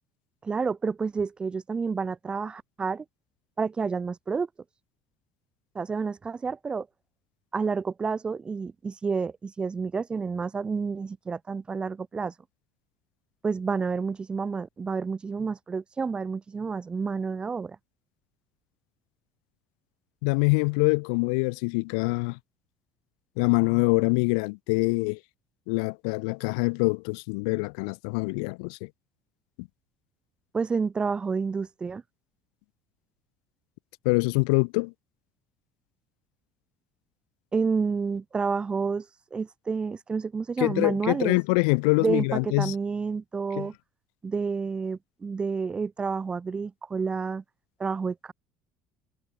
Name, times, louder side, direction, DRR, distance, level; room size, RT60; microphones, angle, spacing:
voice 1, 0.4-3.0 3.6-4.5 5.8-6.9 7.5-12.3 13.4-17.8 30.5-32.0 37.5-39.1 39.3-41.4 42.0-43.7 44.2-47.4 47.8-48.3, right 5 dB, 25° right, 1.9 m, -29 dB
voice 2, 20.2-22.4 23.4-25.2 25.7-28.9 29.6-29.7 34.0-34.9 40.6-42.7 43.6-43.7, left 33 dB, 80° left, 1.0 m, -25 dB
supercardioid pair, 85°, 4 cm